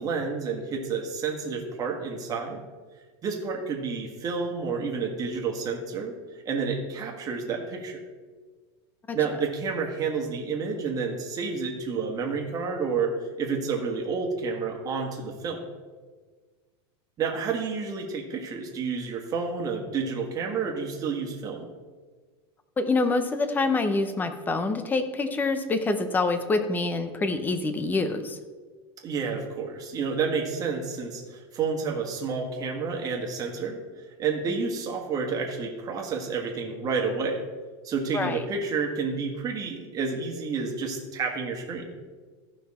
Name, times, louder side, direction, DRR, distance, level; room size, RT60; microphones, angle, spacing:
voice 1, 0.0-2.6 3.2-6.1 6.4-8.0 9.1-15.6 17.2-21.7 29.0-33.8 34.2-37.4 37.8-41.9, right 5 dB, 25° right, 1 dB, 1.6 m, -30 dB
voice 2, 22.8-28.4 38.1-38.4, left 3 dB, 10° left, 9 dB, 0.7 m, -26 dB
14.0 x 5.7 x 4.3 m, 1.4 s
supercardioid pair, 150°, 14 cm